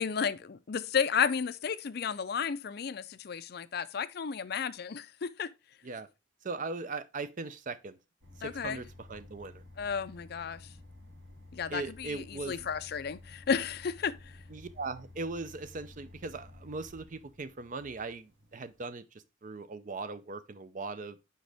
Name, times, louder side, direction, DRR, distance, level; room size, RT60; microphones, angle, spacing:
voice 1, 0.0-5.5 8.4-8.8 9.8-10.7 11.5-14.4, left 6 dB, 55° left, 0.4 m, -33 dB
voice 2, 6.4-8.0 8.4-9.6 11.7-12.7 14.5-21.2, right 3 dB, 40° right, 0.5 m, -39 dB
sound 1, 8.2-18.8, left 2 dB, 75° right, 2.3 m, -53 dB
6.4 x 5.2 x 3.4 m
head